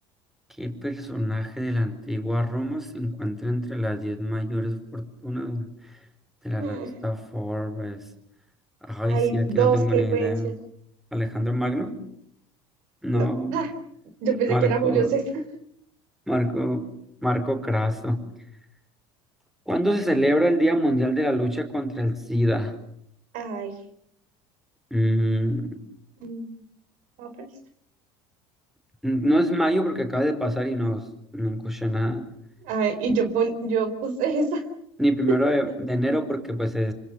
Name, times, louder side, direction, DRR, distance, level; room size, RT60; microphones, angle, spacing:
voice 1, 0.6-6.0 6.4-6.8 7.0-8.0 8.8-10.5 11.1-12.0 13.0-13.6 14.5-15.1 16.3-16.9 17.2-18.2 19.7-22.7 24.9-25.8 29.0-32.3 35.0-36.9, equal, ahead, 7 dB, 4.8 m, -25 dB
voice 2, 6.6-6.9 9.1-10.5 13.1-13.7 14.2-15.4 23.3-23.7 26.2-26.5 27.2-27.5 32.6-34.6, right 6 dB, 70° right, 8 dB, 4.2 m, -25 dB
26.5 x 26.5 x 7.1 m, 0.71 s
supercardioid pair, 90°, 14 cm